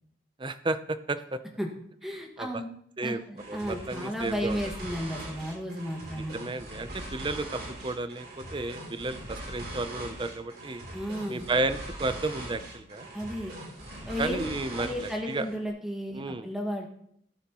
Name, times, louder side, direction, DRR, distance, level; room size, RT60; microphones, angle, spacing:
voice 1, 0.4-1.4 2.4-2.6 3.0-3.2 3.5-4.6 6.2-10.8 11.3-13.1 14.2-15.5 16.1-16.5, right 2 dB, 25° right, 11 dB, 0.5 m, -32 dB
voice 2, 2.0-2.7 3.0-6.4 10.9-11.5 13.1-13.5 14.0-14.4 14.8-16.9, equal, ahead, 0 dB, 1.7 m, -33 dB
sound 1, 3.4-15.6, right 1 dB, 55° right, 3.2 m, -41 dB
17.0 x 9.0 x 3.0 m, 0.68 s
head